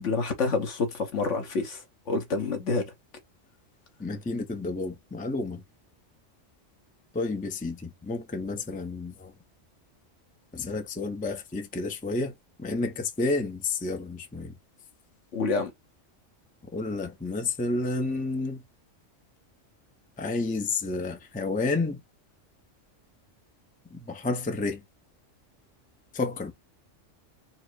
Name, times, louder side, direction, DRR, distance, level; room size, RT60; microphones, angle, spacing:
voice 1, 0.0-2.9 15.3-15.7, left 3 dB, 70° left, 1.4 m, -28 dB
voice 2, 4.0-5.6 7.1-9.3 10.5-12.3 12.6-14.5 16.7-18.6 20.2-22.0 23.9-24.8 26.1-26.5, left 3 dB, 10° left, 0.5 m, -30 dB
4.4 x 2.0 x 4.5 m
omnidirectional pair, 1.3 m